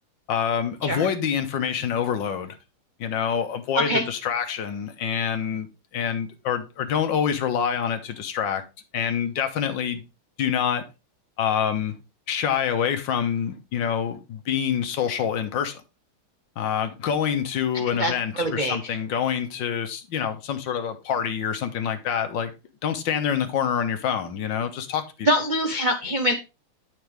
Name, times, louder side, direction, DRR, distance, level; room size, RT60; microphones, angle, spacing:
voice 1, 0.3-2.6 3.0-5.7 5.9-8.6 8.9-10.0 10.4-10.8 11.4-11.9 12.3-15.8 16.6-22.5 22.8-25.3, left 8 dB, 65° left, 1.7 m, -26 dB
voice 2, 18.0-18.8 25.2-26.3, equal, 60° right, 0.4 m, -24 dB
9.2 x 5.9 x 3.3 m
omnidirectional pair, 2.3 m